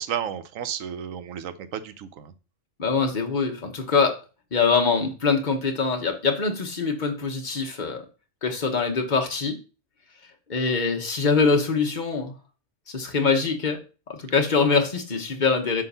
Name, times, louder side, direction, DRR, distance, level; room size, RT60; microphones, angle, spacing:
voice 1, 0.0-2.3, right 9 dB, 80° right, 11 dB, 1.1 m, -32 dB
voice 2, 2.8-4.2 4.5-8.0 8.4-9.6 10.5-12.3 12.9-13.8 14.1-15.8, left 4 dB, 40° left, 4 dB, 1.1 m, -23 dB
7.5 x 2.5 x 5.4 m, 0.34 s
omnidirectional pair, 1.4 m